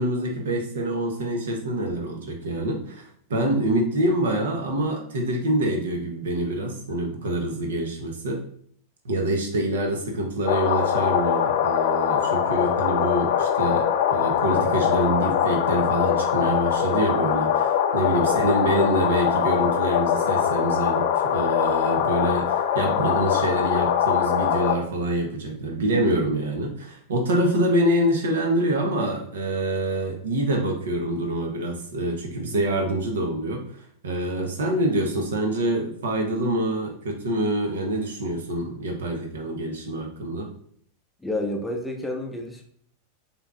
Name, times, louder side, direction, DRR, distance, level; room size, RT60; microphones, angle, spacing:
voice 1, 0.0-8.4 9.0-33.7 34.0-40.5, right 1 dB, 65° right, 3 dB, 0.9 m, -26 dB
sound 1, 10.5-24.7, left 9 dB, 50° left, 0.5 m, -22 dB
voice 2, 41.2-42.6, left 1 dB, 5° left, 2 dB, 0.6 m, -30 dB
6.8 x 2.9 x 2.4 m, 0.62 s
figure-of-eight pair, 90°, 0 cm